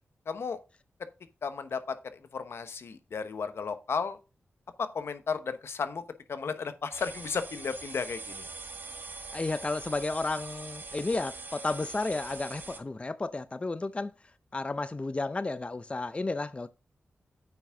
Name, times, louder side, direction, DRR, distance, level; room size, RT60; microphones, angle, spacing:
voice 1, 0.3-0.6 1.4-4.2 4.8-6.0 6.3-8.5, left 5 dB, 70° left, 1.0 m, -34 dB
sound 1, 6.9-12.8, right 3 dB, 50° right, 1.3 m, -43 dB
voice 2, 9.3-14.1 14.5-16.7, left 3 dB, 25° left, 0.5 m, -32 dB
8.9 x 5.9 x 3.7 m
cardioid pair, 75°, 4 cm